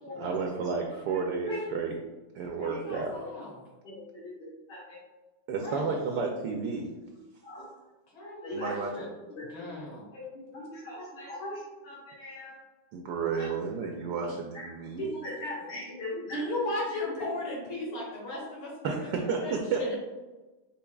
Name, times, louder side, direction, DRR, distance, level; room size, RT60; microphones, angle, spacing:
voice 1, 0.1-2.0 2.3-3.2 5.5-6.9 8.5-8.9 12.9-15.1 18.8-19.8, right 5 dB, 75° right, 1 dB, 1.1 m, -32 dB
voice 2, 1.1-1.6 2.6-3.0 3.8-4.3 4.7-5.0 7.4-7.6 8.2-9.0 9.3-9.7 10.1-12.6 13.4-13.5 14.6-14.7 15.0-16.4, left 1 dB, 60° left, -8 dB, 1.8 m, -40 dB
voice 3, 2.5-3.5 5.6-6.0 8.1-9.1 9.5-10.1 14.2-14.4 16.3-20.0, left 1 dB, 80° left, -3 dB, 2.4 m, -36 dB
5.7 x 3.8 x 2.3 m, 1.1 s
omnidirectional pair, 2.2 m